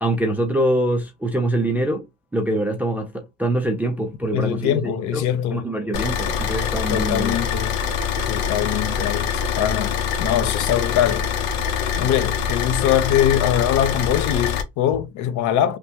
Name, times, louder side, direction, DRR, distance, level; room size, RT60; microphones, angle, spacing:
voice 1, 0.0-2.1 2.3-7.3, right 1 dB, 5° right, 0.4 m, -24 dB
voice 2, 4.3-5.7 6.9-7.8 8.3-11.3 12.0-15.8, left 10 dB, 50° left, 0.6 m, -22 dB
Car / Idling, 5.9-14.6, left 7 dB, 70° left, 0.9 m, -24 dB
3.3 x 2.1 x 2.7 m
supercardioid pair, 130°, 38 cm